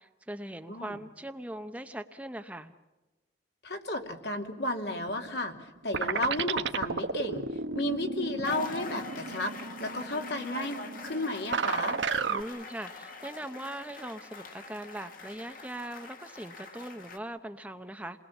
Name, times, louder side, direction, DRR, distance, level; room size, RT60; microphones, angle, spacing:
voice 1, 0.0-2.7 12.3-18.2, right 1 dB, 10° right, 7 dB, 0.7 m, -40 dB
voice 2, 3.6-7.5 7.7-9.5 9.8-12.0, left 1 dB, 65° left, 3 dB, 2.6 m, -33 dB
sound 1, 5.0-5.7 5.9-12.4, right 4 dB, 80° right, 1.1 m, -33 dB
sound 2, 8.4-17.2, left 3 dB, 45° left, 1.7 m, -45 dB
28.5 x 20.5 x 7.2 m, 1.1 s
head